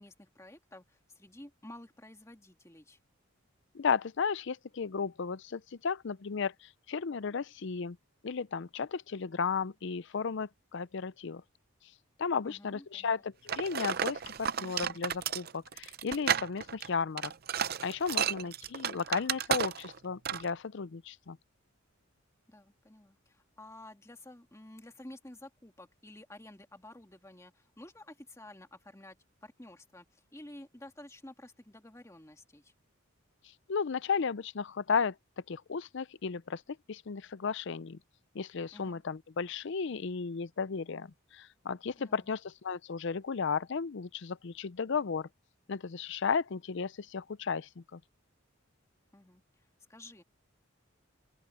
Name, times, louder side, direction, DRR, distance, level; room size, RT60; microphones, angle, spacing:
voice 1, 0.0-3.0 12.4-13.2 18.2-18.5 22.5-29.2 29.4-32.7 38.7-39.0 42.0-42.3 49.1-49.4 49.9-50.2, left 1 dB, 15° left, 2.0 m, -51 dB
voice 2, 3.7-8.0 8.2-11.4 12.2-17.3 17.8-21.4 33.7-35.2 35.5-36.6 36.9-38.0 38.3-45.3 45.7-48.0, left 5 dB, 60° left, 0.5 m, -34 dB
sound 1, 13.5-20.0 20.3-20.5, right 8 dB, 50° right, 0.6 m, -33 dB
open air
head